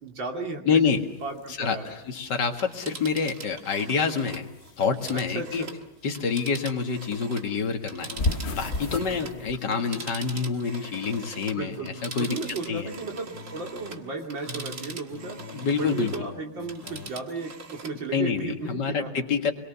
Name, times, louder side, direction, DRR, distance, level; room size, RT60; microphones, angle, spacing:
voice 1, 0.0-0.6 1.2-2.0 5.3-5.7 11.4-11.9 12.2-19.1, right 3 dB, 65° right, 2 dB, 3.5 m, -35 dB
voice 2, 0.6-1.1 1.5-4.5 4.8-5.7 6.0-8.1 8.5-11.8 12.0-12.4 12.7-12.9 15.5-16.1 18.1-19.5, left 5 dB, 55° left, 4 dB, 2.4 m, -27 dB
sound 1, 0.8-3.7 4.0-6.8 7.1-9.6, left 2 dB, 35° left, 1.3 m, -33 dB
Telephone, 2.6-7.5 7.8-16.3 16.6-18.0 18.4-18.5, right 4 dB, 40° right, 1.8 m, -42 dB
sound 2, 8.1-17.1, left 5 dB, 75° left, 2.4 m, -45 dB
27.5 x 22.0 x 6.9 m, 0.85 s
omnidirectional pair, 2.3 m